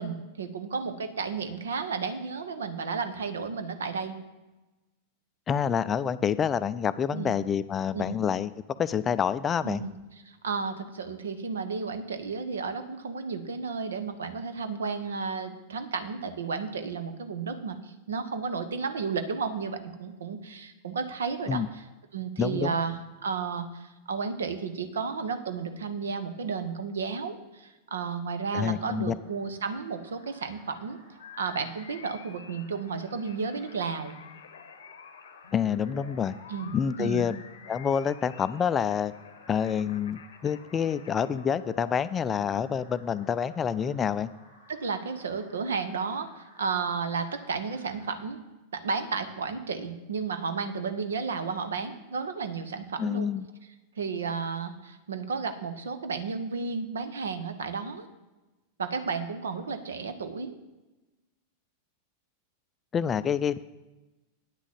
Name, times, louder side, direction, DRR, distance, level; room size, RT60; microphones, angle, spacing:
voice 1, 0.0-4.2 7.1-7.4 7.9-8.2 9.6-9.9 10.2-21.8 22.1-23.0 23.2-31.0 31.4-34.2 36.5-37.2 44.7-48.4 48.7-53.3 54.0-58.1 58.8-60.5, right 5 dB, 65° right, 9 dB, 1.0 m, -33 dB
voice 2, 5.5-8.5 8.8-9.8 21.5-21.7 22.4-22.8 28.5-29.1 35.5-36.4 36.7-37.4 37.7-39.1 39.5-44.3 53.0-53.5 62.9-63.6, left 7 dB, 25° left, 14 dB, 0.4 m, -27 dB
sound 1, 28.8-48.2, equal, 85° right, 3.7 m, -57 dB
sound 2, 31.2-42.0, left 7 dB, 65° left, 0.8 m, -49 dB
9.2 x 6.2 x 7.2 m, 1.1 s
figure-of-eight pair, 90°, 0 cm